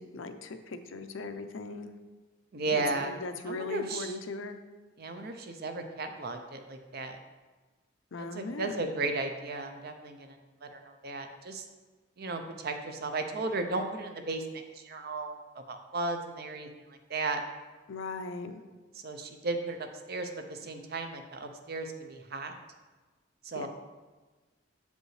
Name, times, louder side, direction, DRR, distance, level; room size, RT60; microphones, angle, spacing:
voice 1, 0.0-1.9 2.7-4.6 8.1-8.8 17.9-18.6 23.6-23.7, left 3 dB, 70° left, 8 dB, 0.5 m, -39 dB
voice 2, 2.5-3.1 3.5-4.1 5.0-7.2 8.2-10.4 10.7-11.6 12.2-14.4 14.7-15.4 15.7-16.7 17.1-17.4 19.0-22.6 23.4-23.7, right 3 dB, 50° right, 6 dB, 0.6 m, -35 dB
7.6 x 5.2 x 3.2 m, 1.3 s
head